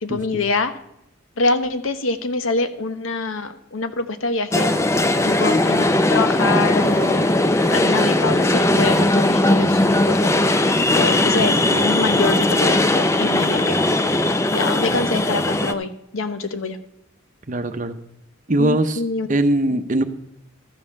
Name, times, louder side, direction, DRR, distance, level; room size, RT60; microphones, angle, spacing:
voice 1, 0.0-0.7 1.4-4.7 5.2-7.3 7.7-10.6 10.9-14.1 14.5-16.8 18.6-19.3 19.7-19.8, left 3 dB, 90° left, 9 dB, 1.0 m, -25 dB
sound 1, 4.5-15.7, left 1 dB, 15° left, 0.4 m, -18 dB
voice 2, 17.5-18.0 18.5-19.0 19.3-20.0, right 1 dB, 40° right, 9 dB, 0.7 m, -20 dB
13.0 x 5.4 x 6.6 m, 0.81 s
head